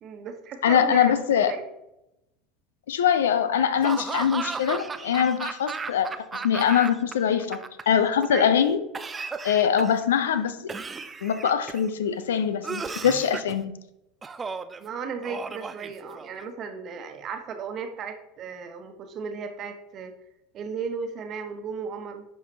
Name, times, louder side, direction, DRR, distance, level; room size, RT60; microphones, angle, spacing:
voice 1, 0.0-1.1 1.5-1.7 8.3-8.5 14.8-20.1 20.5-22.2, right 5 dB, 40° right, 7 dB, 1.2 m, -35 dB
voice 2, 0.6-1.5 2.9-6.1 6.4-7.6 7.9-8.8 9.4-10.7 11.2-13.7, left 8 dB, 70° left, 12 dB, 0.7 m, -23 dB
Laughter / Cough, 3.8-7.1 7.4-8.2 8.9-10.1 10.7-11.9 12.6-13.6 14.2-14.8 15.2-16.4, right 4 dB, 20° right, 0.5 m, -34 dB
11.0 x 5.5 x 3.3 m, 0.87 s
figure-of-eight pair, 75°, 0 cm